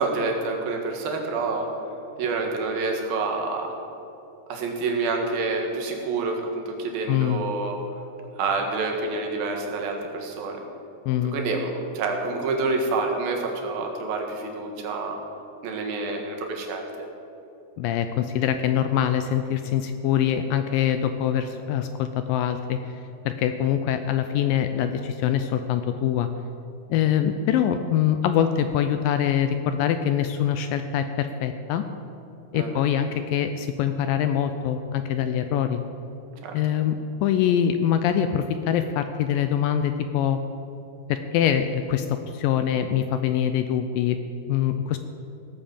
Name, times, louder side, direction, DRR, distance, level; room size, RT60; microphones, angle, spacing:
voice 1, 0.0-1.7 2.2-3.7 4.5-7.8 8.4-10.6 11.3-15.2 15.6-16.9 32.5-33.0 36.4-36.5, right 3 dB, 75° right, 2 dB, 3.4 m, -28 dB
voice 2, 7.1-7.4 11.1-11.4 17.8-22.8 23.3-26.3 26.9-31.8 32.5-35.8 36.5-40.4 41.1-44.2 44.5-45.0, left 9 dB, 80° left, 9 dB, 2.1 m, -24 dB
17.0 x 8.8 x 7.1 m, 2.8 s
omnidirectional pair, 4.3 m